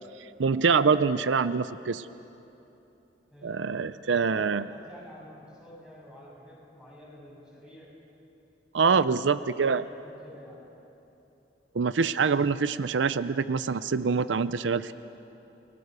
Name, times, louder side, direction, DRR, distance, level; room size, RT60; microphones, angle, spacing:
voice 1, 0.4-2.1 3.4-4.6 8.7-9.8 11.7-14.9, right 5 dB, 90° right, 14 dB, 0.6 m, -25 dB
voice 2, 3.3-7.9 8.9-10.6, equal, 5° right, -5 dB, 7.2 m, -49 dB
29.5 x 20.5 x 6.7 m, 3.0 s
head